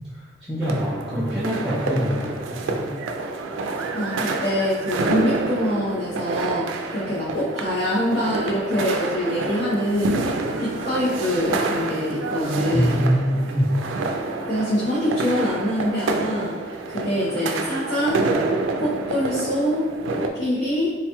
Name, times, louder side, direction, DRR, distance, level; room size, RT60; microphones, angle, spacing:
voice 1, 0.5-2.9 12.7-13.8, equal, ahead, -10 dB, 0.4 m, -24 dB
sound 1, 0.6-20.3, right 3 dB, 85° right, 0.3 m, -28 dB
voice 2, 3.6-13.1 14.5-16.6 16.9-18.3 18.8-20.9, equal, 55° left, -10 dB, 0.8 m, -25 dB
3.8 x 2.2 x 2.9 m, 1.3 s
head